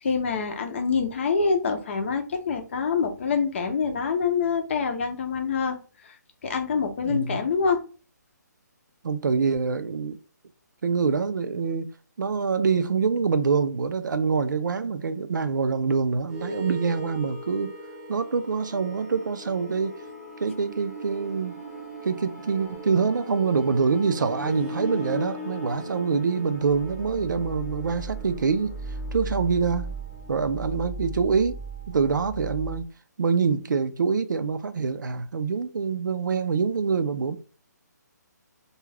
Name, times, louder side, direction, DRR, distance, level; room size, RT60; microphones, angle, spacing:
voice 1, 0.0-5.8 6.4-7.8, left 5 dB, 40° left, 0.6 m, -25 dB
voice 2, 7.0-7.5 9.0-10.2 10.8-11.9 12.2-17.7 18.1-20.0 20.4-21.5 22.0-28.7 29.1-30.0 30.3-31.6 31.9-32.9 33.2-37.4, right 5 dB, 85° right, 0.4 m, -25 dB
sound 1, 16.3-32.9, right 1 dB, 10° right, 0.8 m, -37 dB
2.3 x 2.3 x 3.2 m
hypercardioid pair, 165°, 10 cm